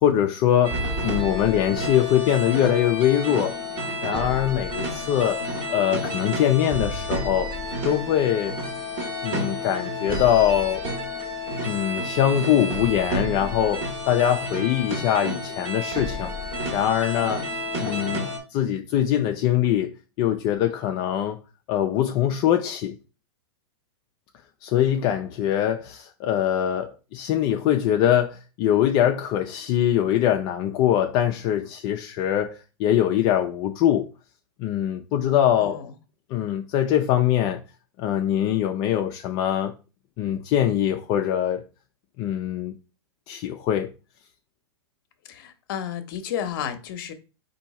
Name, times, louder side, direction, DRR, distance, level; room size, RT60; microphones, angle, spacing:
voice 1, 0.0-3.5 4.0-5.4 5.7-7.5 7.8-8.5 9.2-10.8 11.6-16.3 16.7-17.4 17.8-18.3 18.5-21.4 21.7-23.0 24.6-34.1 34.6-35.8 36.3-37.6 38.0-39.7 40.2-41.6 42.2-42.7 43.3-43.9, left 10 dB, 30° left, 0.4 m, -23 dB
sound 1, 0.6-18.4, left 1 dB, 35° right, 1.5 m, -30 dB
voice 2, 35.6-35.9 45.3-47.1, left 9 dB, 50° left, 0.8 m, -32 dB
4.5 x 2.7 x 4.2 m
hypercardioid pair, 145°, 14 cm